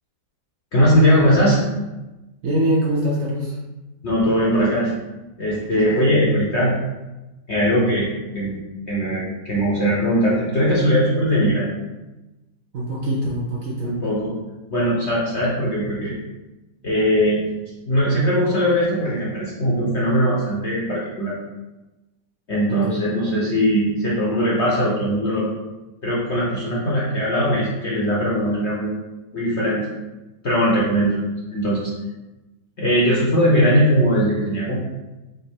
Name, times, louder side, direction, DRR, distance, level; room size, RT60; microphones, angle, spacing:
voice 1, 0.7-1.6 4.0-4.9 5.4-6.7 7.5-8.6 8.9-11.7 13.8-14.3 14.7-16.1 16.8-17.4 17.9-21.4 22.5-25.5 26.0-28.9 29.3-29.9 30.4-31.9 32.8-34.8, equal, 55° left, -6 dB, 0.8 m, -20 dB
voice 2, 2.4-3.6 12.7-13.9 22.7-23.1, right 1 dB, 60° right, -4 dB, 0.9 m, -23 dB
5.0 x 2.0 x 4.4 m, 1.1 s
omnidirectional pair, 2.0 m